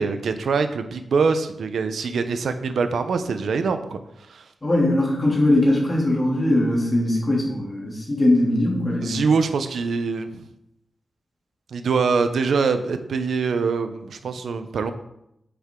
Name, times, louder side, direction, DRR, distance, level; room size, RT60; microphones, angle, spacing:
voice 1, 0.0-4.0 4.3-4.4 9.0-10.5 11.7-14.9, right 5 dB, 90° right, 8 dB, 0.8 m, -24 dB
voice 2, 4.6-9.2, left 1 dB, 20° left, -4 dB, 2.9 m, -20 dB
8.9 x 7.0 x 3.8 m, 0.80 s
wide cardioid pair, 140°, 0 cm